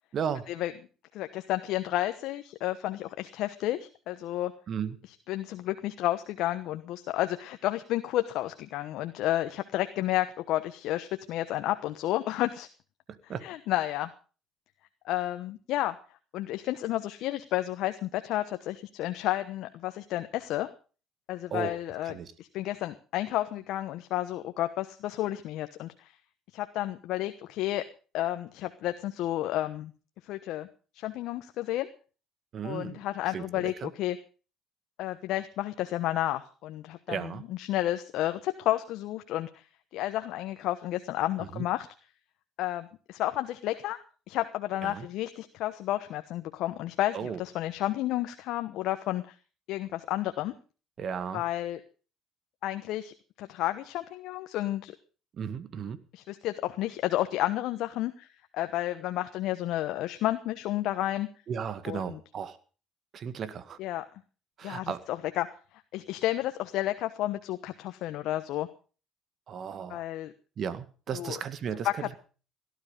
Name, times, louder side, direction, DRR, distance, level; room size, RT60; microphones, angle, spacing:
voice 1, 0.1-0.5 4.7-5.0 13.1-13.5 21.5-21.7 22.1-22.3 32.5-33.0 33.3-33.9 37.1-37.5 41.4-41.7 44.8-45.1 47.1-47.4 51.0-51.4 55.3-56.0 61.5-62.6 63.1-63.8 64.6-65.0 69.5-70.0 70.6-72.1, right 7 dB, 55° right, 13 dB, 1.8 m, -35 dB
voice 2, 1.1-4.5 5.3-12.7 13.4-14.1 15.0-16.0 16.3-20.7 21.3-26.1 26.5-27.8 28.1-29.9 30.2-30.7 30.9-31.9 32.6-34.2 35.0-39.6 39.9-41.9 42.6-44.0 44.3-49.3 49.7-50.5 51.3-51.8 52.6-54.9 56.1-58.3 58.5-61.3 61.9-62.2 63.8-64.0 64.6-65.5 65.9-68.7 69.9-70.3 71.1-71.4 71.8-71.9, left 14 dB, 70° left, 9 dB, 1.0 m, -31 dB
17.5 x 12.5 x 5.3 m, 0.38 s
supercardioid pair, 70°, 0 cm